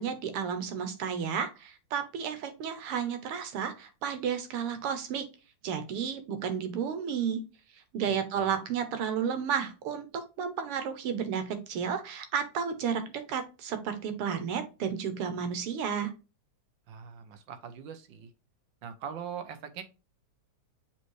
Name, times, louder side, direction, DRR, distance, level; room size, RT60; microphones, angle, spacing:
voice 1, 0.0-5.3 5.6-7.4 7.9-16.1, right 7 dB, 90° right, 2.0 m, -32 dB
voice 2, 8.0-8.6 16.9-18.3 18.8-19.8, right 7 dB, 65° right, 1.4 m, -42 dB
7.2 x 4.3 x 3.1 m
omnidirectional pair, 2.4 m